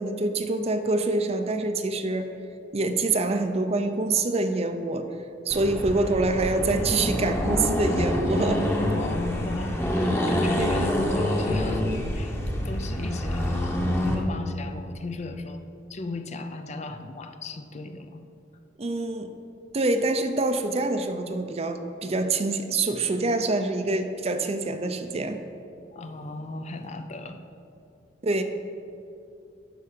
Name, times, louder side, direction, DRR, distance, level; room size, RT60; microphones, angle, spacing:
voice 1, 0.0-2.3 2.7-5.1 5.5-8.6 10.6-10.8 18.8-19.3 19.7-25.4 28.2-28.4, right 2 dB, 35° right, 8 dB, 0.6 m, -26 dB
Accelerating revving vroom, 5.5-14.2, left 1 dB, 15° left, 1.0 m, -26 dB
voice 2, 8.9-12.4 12.6-15.6 15.9-18.3 25.9-27.4, left 2 dB, 40° left, 8 dB, 0.5 m, -36 dB
11.5 x 4.7 x 6.5 m, 2.6 s
head